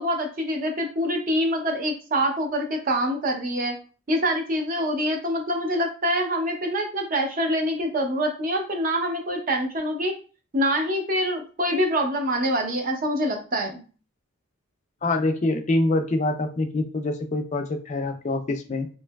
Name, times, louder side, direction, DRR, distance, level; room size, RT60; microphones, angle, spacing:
voice 1, 0.0-3.7 4.1-10.1 10.5-13.8, equal, 40° right, 3 dB, 0.5 m, -25 dB
voice 2, 15.0-18.9, left 2 dB, 35° left, 5 dB, 0.3 m, -25 dB
3.1 x 2.6 x 2.2 m, 0.37 s
head